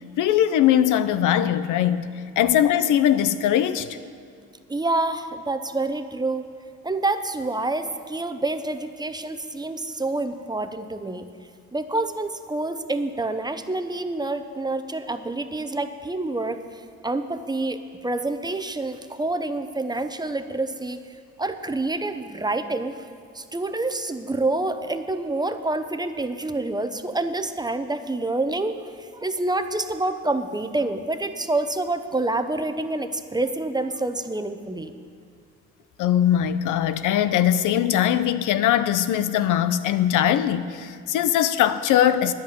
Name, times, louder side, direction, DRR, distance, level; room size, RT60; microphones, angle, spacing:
voice 1, 0.2-2.1 2.4-3.9 36.0-42.3, left 10 dB, 85° left, 13 dB, 0.6 m, -21 dB
voice 2, 4.7-6.5 6.8-11.2 11.7-16.6 17.0-21.0 21.4-22.9 23.3-28.8 29.2-34.9, right 2 dB, 15° right, 9 dB, 0.7 m, -27 dB
10.5 x 8.4 x 9.0 m, 2.2 s
cardioid pair, 90°, 30 cm